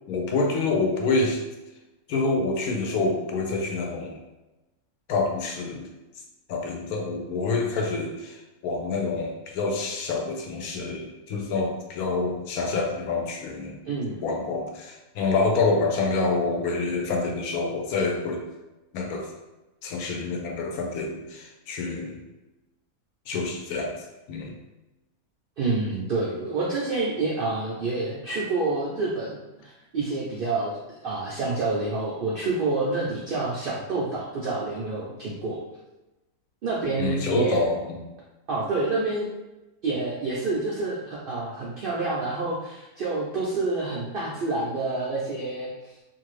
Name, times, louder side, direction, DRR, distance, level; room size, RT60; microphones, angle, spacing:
voice 1, 0.1-1.4 2.1-4.2 5.1-5.9 6.5-13.8 14.2-18.5 18.9-19.3 19.8-22.2 23.3-24.5 37.0-38.0, left 3 dB, 85° left, 1 dB, 1.1 m, -27 dB
voice 2, 13.8-14.2 25.6-30.8 31.0-35.6 36.6-37.6 38.5-39.3 39.8-45.9, right 3 dB, 90° right, -5 dB, 0.4 m, -28 dB
2.6 x 2.5 x 3.1 m, 1.0 s
omnidirectional pair, 1.5 m